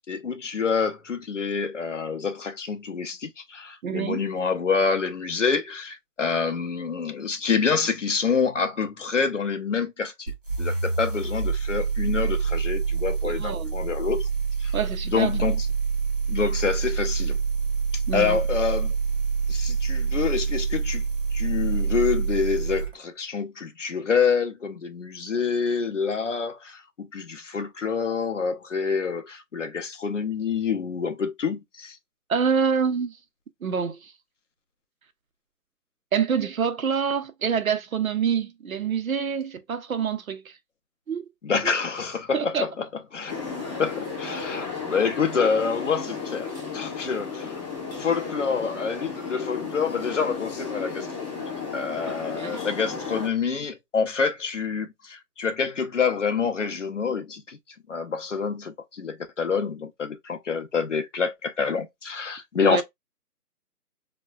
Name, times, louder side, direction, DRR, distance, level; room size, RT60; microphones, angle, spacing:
voice 1, 0.1-10.3 10.6-14.3 14.6-14.8 15.0-15.7 16.3-17.4 17.9-18.9 19.5-21.0 21.3-32.0 41.4-42.9 43.1-43.3 43.8-47.6 47.9-51.4 51.7-57.6 57.9-62.8, left 5 dB, 50° left, 0.5 m, -27 dB
voice 2, 3.8-4.2 13.2-13.7 14.7-15.3 18.1-18.4 32.3-33.2 33.6-34.1 36.1-40.5 41.1-41.2 42.3-42.7 52.1-52.6 62.6-62.8, right 6 dB, 60° right, 0.5 m, -26 dB
sound 1, 10.3-22.9, right 5 dB, 35° right, 0.9 m, -26 dB
sound 2, 43.3-53.3, left 5 dB, 25° left, 1.2 m, -34 dB
3.4 x 2.2 x 2.3 m
hypercardioid pair, 180°, 47 cm